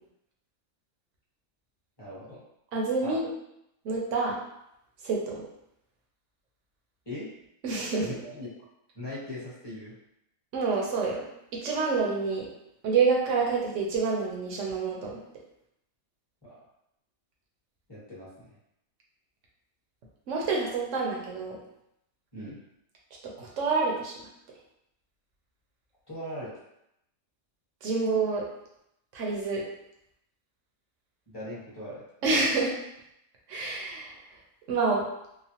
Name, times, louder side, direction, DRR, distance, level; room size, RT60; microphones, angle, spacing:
voice 1, 2.0-2.4 3.0-3.2 7.0-7.3 8.0-8.5 8.9-9.9 16.4-16.5 17.9-18.5 22.3-22.6 26.1-26.5 31.3-32.0, left 1 dB, 20° left, -9 dB, 1.0 m, -39 dB
voice 2, 2.7-3.3 3.8-4.4 5.0-5.4 7.6-8.2 10.5-11.3 11.5-12.5 12.8-15.2 20.3-21.6 23.2-24.3 27.8-28.4 29.1-29.6 32.2-32.7 33.5-34.1 34.7-35.0, right 4 dB, 65° right, -2 dB, 1.0 m, -27 dB
3.0 x 2.1 x 2.8 m, 0.80 s
omnidirectional pair, 1.5 m